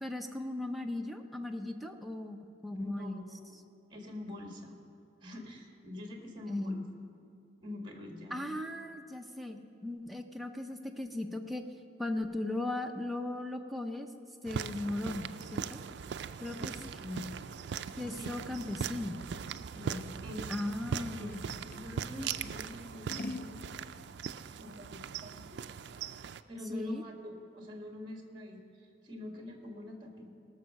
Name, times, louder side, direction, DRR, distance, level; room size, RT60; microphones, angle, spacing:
voice 1, 0.0-3.3 6.5-7.0 8.3-11.6 12.0-14.1 14.4-15.8 16.4-16.8 18.0-19.2 20.5-21.5 26.7-27.0, left 1 dB, ahead, 5 dB, 0.6 m, -37 dB
voice 2, 2.8-3.6 3.9-4.8 5.2-6.8 7.6-8.6 16.5-17.4 18.0-18.4 19.7-20.5 20.9-21.3 21.7-24.0 24.6-25.6 26.5-30.3, left 1 dB, 25° right, 2 dB, 1.6 m, -45 dB
sound 1, 14.5-26.4, right 7 dB, 60° right, 0.3 m, -40 dB
Scissors, 15.7-21.9 22.4-23.6, left 2 dB, 50° left, 0.4 m, -47 dB
18.5 x 6.4 x 6.4 m, 2.5 s
head